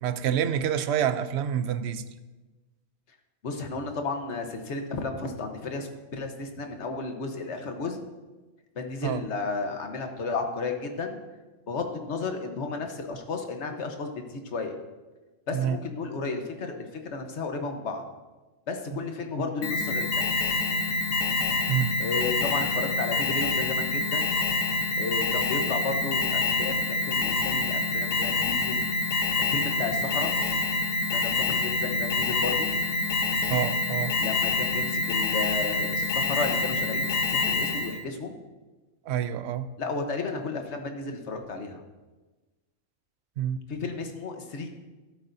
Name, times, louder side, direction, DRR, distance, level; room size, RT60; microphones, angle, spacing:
voice 1, 0.0-2.0 9.0-9.2 15.5-15.8 18.9-19.0 21.7-21.9 33.5-34.1 39.1-39.7 43.4-43.6, right 9 dB, 65° right, 0.8 m, -27 dB
voice 2, 3.4-8.0 8.7-11.2 11.7-14.7 15.5-18.0 18.7-20.3 22.0-24.3 25.0-28.8 29.4-30.4 31.1-32.7 34.2-38.4 39.8-41.8 43.7-44.7, left 3 dB, 60° left, 1.4 m, -33 dB
Alarm, 19.6-38.0, left 3 dB, 90° left, 1.3 m, -26 dB
13.0 x 12.5 x 2.7 m
omnidirectional pair, 1.3 m